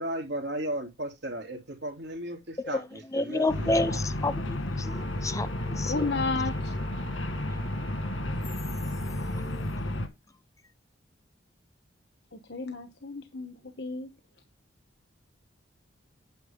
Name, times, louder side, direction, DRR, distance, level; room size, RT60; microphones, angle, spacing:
voice 1, 0.0-3.8, right 1 dB, 60° right, 3.1 m, -35 dB
voice 2, 3.1-6.1, left 2 dB, 15° left, 0.5 m, -30 dB
sound 1, 3.5-10.1, left 1 dB, 80° left, 1.7 m, -32 dB
sound 2, 4.8-9.7, right 4 dB, 15° right, 5.5 m, -48 dB
voice 3, 5.9-6.7 12.3-14.1, left 3 dB, 60° left, 1.2 m, -33 dB
9.6 x 7.8 x 3.6 m
head